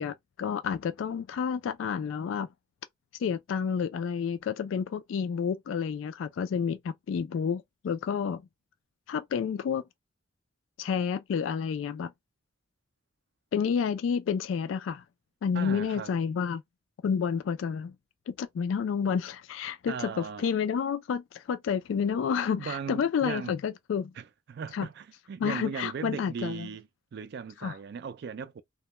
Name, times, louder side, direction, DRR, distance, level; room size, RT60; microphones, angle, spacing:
voice 1, 0.0-2.5 3.2-8.4 9.1-9.8 10.8-12.1 13.5-15.0 15.4-16.6 17.0-17.9 18.3-24.1 24.7-24.9 25.4-26.7 27.6-27.7, left 6 dB, 80° left, 0.3 m, -30 dB
voice 2, 15.5-16.1 19.9-20.5 22.6-23.6 24.2-28.6, right 6 dB, 55° right, 0.3 m, -38 dB
2.2 x 2.1 x 2.9 m
head